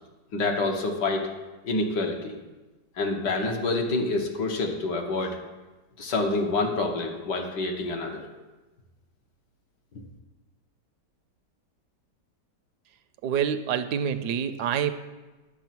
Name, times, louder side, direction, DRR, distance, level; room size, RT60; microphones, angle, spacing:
voice 1, 0.3-1.3 1.6-2.4 3.0-5.4 6.0-8.2, left 3 dB, 75° left, 2 dB, 2.0 m, -27 dB
voice 2, 13.2-14.9, right 8 dB, 75° right, 10 dB, 1.1 m, -26 dB
10.5 x 7.4 x 6.0 m, 1.2 s
omnidirectional pair, 1.8 m